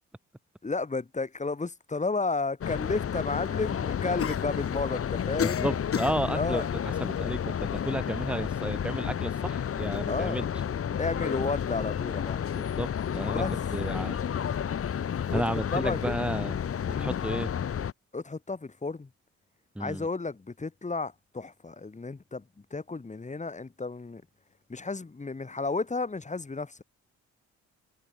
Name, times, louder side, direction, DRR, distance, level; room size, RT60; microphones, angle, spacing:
voice 1, 0.6-5.7 6.3-6.7 10.1-10.4 11.0-12.5 13.3-13.6 15.3-16.1 16.9-17.2 18.1-19.1 19.8-22.4 22.7-24.2 24.7-26.8, left 3 dB, 25° left, 5.3 m, -32 dB
sound 1, 2.6-17.9, left 8 dB, 50° left, 1.7 m, -31 dB
voice 2, 5.4-10.5 12.5-13.4 13.7-14.2 15.3-16.6 17.0-17.5 19.8-20.1, right 1 dB, 5° right, 2.2 m, -32 dB
cardioid pair, 90°, 30 cm